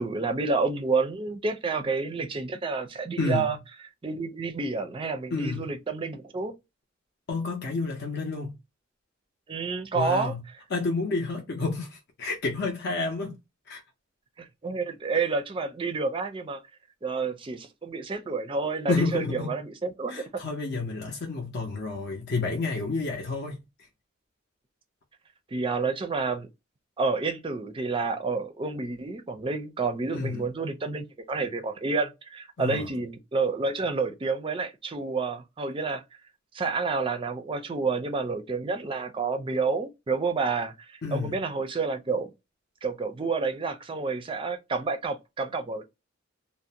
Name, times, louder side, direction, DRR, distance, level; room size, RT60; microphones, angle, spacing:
voice 1, 0.0-3.6 4.0-6.5 9.5-10.4 14.4-16.6 17.0-20.2 25.5-26.5 27.0-36.0 36.5-40.7 41.1-42.3 42.8-45.8, right 4 dB, 25° right, 0.4 m, -29 dB
voice 2, 3.2-3.6 5.3-5.7 7.3-8.5 9.9-10.4 10.7-13.4 13.7-13.8 18.9-19.5 20.1-23.9 30.1-30.5 32.6-32.9 41.0-41.4, left 3 dB, 55° left, 0.6 m, -30 dB
2.5 x 2.0 x 2.7 m
head